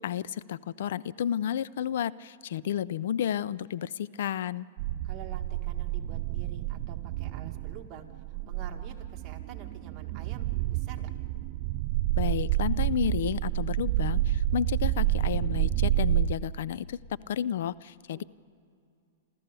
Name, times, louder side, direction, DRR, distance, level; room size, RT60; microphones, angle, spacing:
voice 1, 0.0-4.7 12.2-17.0 17.3-18.2, left 9 dB, 70° left, 19 dB, 0.4 m, -31 dB
sound 1, 4.8-16.4, right 14 dB, 50° right, 0.4 m, -29 dB
voice 2, 5.0-11.1 18.1-18.2, right 7 dB, 30° right, 1 dB, 1.9 m, -48 dB
27.5 x 14.0 x 6.8 m, 2.4 s
hypercardioid pair, 145°, 0 cm